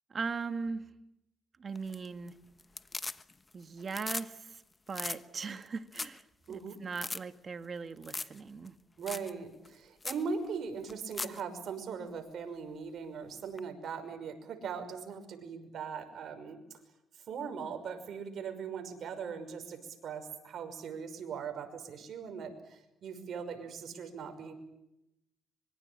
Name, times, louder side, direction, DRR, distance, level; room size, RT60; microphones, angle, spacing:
voice 1, 0.1-0.9 1.6-2.3 3.5-4.6 4.9-6.2 6.5-8.8, right 5 dB, 40° right, 9 dB, 2.0 m, -39 dB
sound 1, 1.8-2.3 2.6-3.5 3.8-4.3 4.6-4.7 4.9-5.2 5.6-5.7 5.9-6.2 6.5-6.6 6.9-7.2 8.0-8.4 8.7-8.8 9.1-9.3 9.7-9.8 10.0-10.2 10.9-11.4 13.6-13.7, left 3 dB, 20° left, 1.2 m, -38 dB
voice 2, 6.5-6.8 9.0-16.6 17.3-24.5, right 6 dB, 65° right, 7 dB, 5.9 m, -40 dB
25.5 x 24.0 x 8.9 m, 0.86 s
cardioid pair, 90°, 0 cm